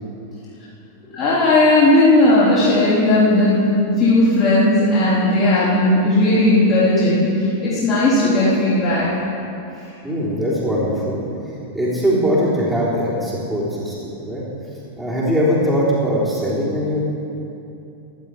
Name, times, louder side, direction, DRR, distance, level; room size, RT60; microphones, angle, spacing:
voice 1, 1.1-9.1, left 1 dB, 30° left, -12 dB, 4.0 m, -16 dB
voice 2, 10.0-11.2 11.7-14.4 15.0-17.0, equal, 5° right, -8 dB, 3.6 m, -21 dB
15.5 x 11.5 x 4.8 m, 2.7 s
figure-of-eight pair, 90°, 0 cm